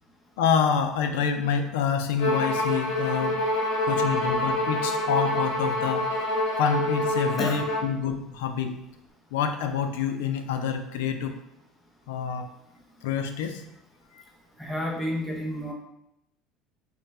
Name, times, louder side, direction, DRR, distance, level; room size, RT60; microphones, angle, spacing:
voice 1, 0.4-3.5 3.8-6.2 6.6-8.9 9.3-11.4 12.1-12.5 13.0-13.7 14.1-14.2, left 7 dB, 85° left, 7 dB, 0.4 m, -27 dB
Bowed string instrument, 2.2-7.9, left 1 dB, 65° left, 0.9 m, -26 dB
voice 2, 14.6-15.7, equal, ahead, -2 dB, 0.8 m, -30 dB
3.3 x 2.2 x 4.1 m, 0.82 s
supercardioid pair, 95°, 0 cm